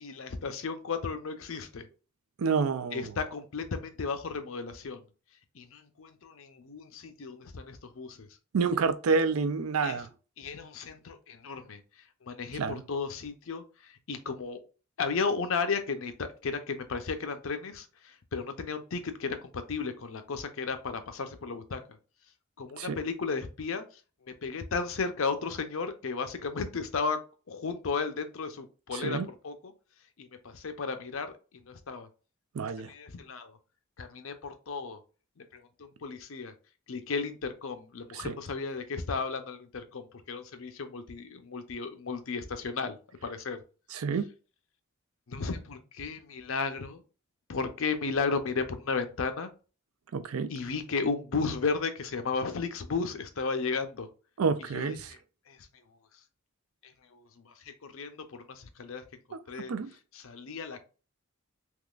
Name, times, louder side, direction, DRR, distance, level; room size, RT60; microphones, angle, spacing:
voice 1, 0.0-1.9 2.9-5.1 5.5-8.3 9.8-10.1 10.4-14.6 15.0-21.8 22.6-27.2 27.5-29.7 30.2-32.1 32.8-33.6 34.0-35.0 35.4-36.5 36.9-43.6 45.3-47.0 47.5-49.5 50.5-54.1 54.7-55.2 55.5-55.8 56.1-56.2 56.8-59.7 60.1-60.9, left 4 dB, 75° left, 0.6 m, -34 dB
voice 2, 2.4-3.1 8.5-10.1 12.6-12.7 22.8-23.0 28.9-29.3 32.5-32.9 38.1-38.4 43.9-44.2 50.1-50.5 54.4-55.1 59.3-59.4 59.7-59.9, right 5 dB, 85° right, 0.4 m, -28 dB
3.6 x 2.9 x 2.4 m
head